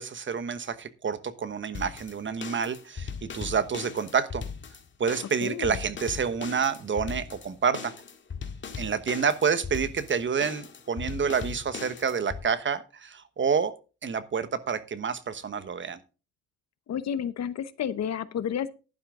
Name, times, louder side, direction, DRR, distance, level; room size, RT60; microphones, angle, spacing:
voice 1, 0.0-4.4 5.0-7.9 8.8-13.7 14.0-16.0, right 6 dB, 40° right, 14 dB, 1.1 m, -28 dB
sound 1, 1.7-12.4, left 6 dB, 40° left, 1.9 m, -39 dB
voice 2, 5.4-5.8 16.9-18.7, left 8 dB, 60° left, 15 dB, 0.9 m, -31 dB
11.5 x 10.5 x 3.7 m, 0.33 s
cardioid pair, 90°, 30 cm